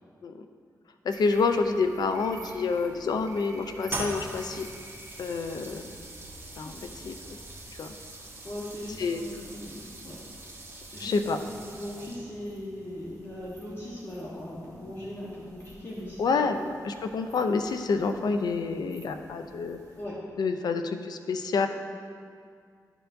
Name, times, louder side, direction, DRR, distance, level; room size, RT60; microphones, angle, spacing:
voice 1, 1.0-4.7 5.2-5.9 6.6-7.2 7.8-7.9 9.0-9.2 11.0-11.4 16.2-19.8 20.4-21.7, left 4 dB, 75° left, 7 dB, 0.5 m, -28 dB
sound 1, 1.1-20.0, right 1 dB, 55° right, 1.2 m, -52 dB
sound 2, 3.9-12.5, right 2 dB, 35° right, 1.1 m, -42 dB
voice 2, 8.4-10.2 10.9-16.6 16.9-17.0 20.0-20.2, left 1 dB, 35° left, -6 dB, 1.1 m, -39 dB
11.5 x 4.5 x 2.6 m, 2.2 s
cardioid pair, 75°, 7 cm